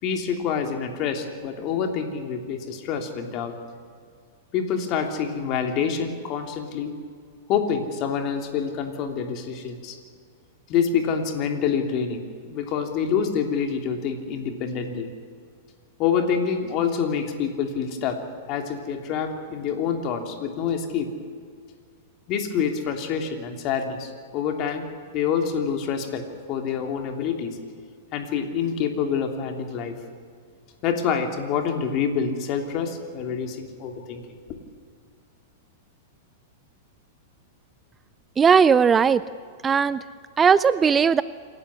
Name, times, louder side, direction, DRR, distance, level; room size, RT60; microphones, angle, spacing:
voice 1, 0.0-3.5 4.5-6.9 7.5-10.0 10.7-15.1 16.0-18.2 18.5-21.1 22.3-27.6 28.1-30.0 30.8-34.6, left 7 dB, 45° left, 4 dB, 3.0 m, -27 dB
voice 2, 38.4-39.2 39.6-40.0 40.4-41.2, right 6 dB, 20° right, 17 dB, 0.5 m, -17 dB
27.5 x 12.0 x 9.8 m, 2.1 s
hypercardioid pair, 100°, 0 cm